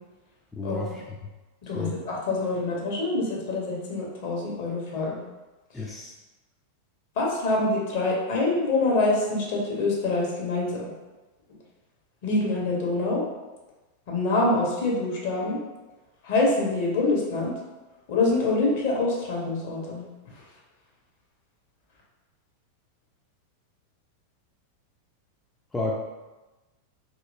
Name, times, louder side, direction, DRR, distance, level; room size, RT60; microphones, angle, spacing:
voice 1, 0.5-1.0 1.7-1.9 5.7-6.1 25.7-26.0, left 2 dB, 10° left, -3 dB, 0.3 m, -31 dB
voice 2, 1.6-5.2 7.2-10.9 12.2-13.2 14.1-15.6 16.2-17.5 18.1-20.0, left 2 dB, 50° left, -3 dB, 0.9 m, -25 dB
3.0 x 2.8 x 2.5 m, 1.1 s
figure-of-eight pair, 90°, 0 cm